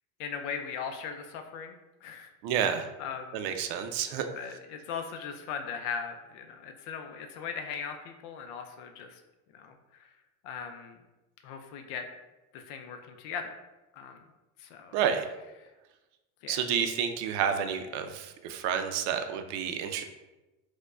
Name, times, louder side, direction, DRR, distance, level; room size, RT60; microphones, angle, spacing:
voice 1, 0.2-1.7 2.0-2.3 3.0-3.4 4.3-9.2 9.5-9.7 10.4-11.0 11.4-12.0 12.5-13.4 13.9-14.2 14.6-14.9 16.4-16.6, left 6 dB, 75° left, 6 dB, 0.5 m, -38 dB
voice 2, 2.4-2.9 3.3-4.3 14.9-15.3 16.5-20.0, right 8 dB, 70° right, 7 dB, 0.5 m, -30 dB
4.4 x 2.2 x 2.4 m, 1.1 s
cardioid pair, 150°, 33 cm